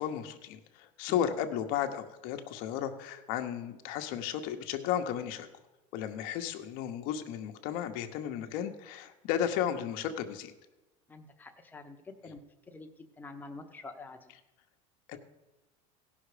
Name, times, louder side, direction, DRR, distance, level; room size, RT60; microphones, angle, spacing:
voice 1, 0.0-5.5 5.9-10.5 15.1-15.2, left 9 dB, 60° left, 6 dB, 1.0 m, -34 dB
voice 2, 11.1-12.4 12.7-14.3, left 3 dB, 10° left, 4 dB, 0.9 m, -47 dB
16.5 x 5.8 x 5.0 m, 1.1 s
supercardioid pair, 140°, 17 cm